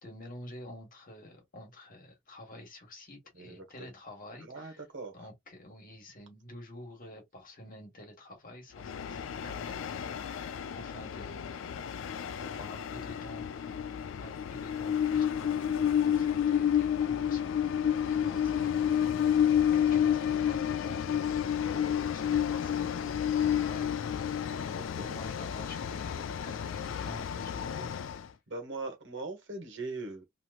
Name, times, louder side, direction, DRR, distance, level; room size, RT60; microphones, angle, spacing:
voice 1, 0.0-4.9 5.1-13.8 14.2-17.8 18.1-28.3, left 1 dB, 45° left, 1.4 m, -49 dB
voice 2, 3.3-3.9 4.4-5.3 24.5-25.2 28.5-30.2, right 3 dB, 65° right, 1.3 m, -41 dB
Train, 8.8-28.3, left 9 dB, 70° left, 0.3 m, -30 dB
3.0 x 2.9 x 2.3 m
head